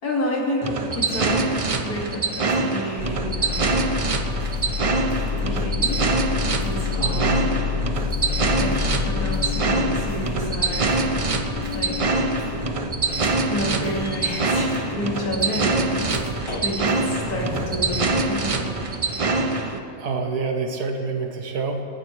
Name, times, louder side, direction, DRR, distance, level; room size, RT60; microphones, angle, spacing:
voice 1, 0.0-1.5 1.8-4.0 5.4-6.1 6.6-7.4 8.6-11.1 11.7-12.2 13.5-18.7, left 1 dB, 70° left, -3 dB, 2.9 m, -30 dB
sound 1, 0.6-19.8, right 3 dB, 50° right, 0.4 m, -24 dB
sound 2, 2.8-4.8 5.1-6.1 6.5-7.5 7.9-8.9 9.3-9.6 10.0-10.4 10.9-11.2 11.6-11.9 12.1-12.8 13.0-16.4 16.9-17.7 18.4-19.0, equal, 10° right, 2.7 m, -46 dB
sound 3, 3.0-18.3, left 6 dB, 30° left, 0.6 m, -29 dB
voice 2, 7.0-7.4 20.0-21.8, right 4 dB, 80° right, 4 dB, 1.7 m, -27 dB
27.0 x 11.0 x 3.3 m, 2.9 s
omnidirectional pair, 1.6 m